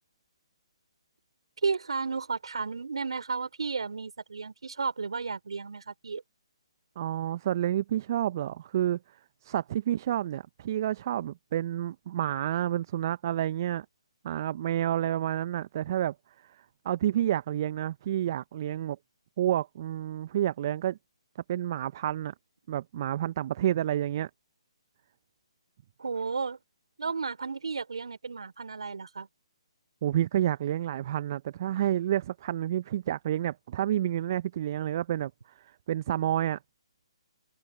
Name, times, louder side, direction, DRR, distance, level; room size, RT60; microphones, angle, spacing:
voice 1, 1.6-6.2 26.0-26.6 27.0-29.3, right 4 dB, 65° right, 5.2 m, -33 dB
voice 2, 7.0-9.0 9.4-13.8 14.2-16.1 16.4-19.0 19.4-21.0 21.5-22.3 22.7-24.3 30.0-35.3 35.6-36.6, right 12 dB, 40° right, 0.8 m, -29 dB
figure-of-eight pair, 135°, 3 cm